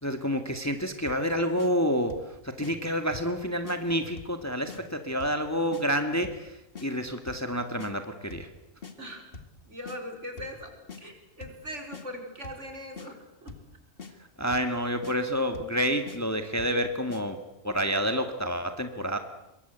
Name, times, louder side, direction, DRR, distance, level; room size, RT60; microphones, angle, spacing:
voice 1, 0.0-2.2 2.4-6.5 6.8-8.5 14.4-17.4 17.6-19.2, equal, 10° left, 6 dB, 1.8 m, -28 dB
sound 1, 1.1-1.3 1.6-1.7 2.1-2.3 2.6-2.7 3.1-3.4 3.6-3.8 4.2-4.4 4.7-4.8 5.2-5.4 5.7-5.8 6.2-6.5 6.7-6.9 7.3-7.5 7.8-7.9 8.3-8.5 8.8-8.9 9.3-9.6 9.9-10.0 10.4-10.6 10.9-11.0 11.4-11.6 11.9-12.0 12.4-12.7 13.0-13.1 13.5-13.7 14.0-14.1 14.5-14.7 15.0-15.2 15.5-15.8 16.1-16.2 16.6-16.8 17.1-17.2, left 4 dB, 45° left, 2.2 m, -43 dB
voice 2, 9.7-13.5, equal, 60° right, 3 dB, 5.1 m, -41 dB
24.5 x 23.0 x 8.1 m, 0.86 s
omnidirectional pair, 1.4 m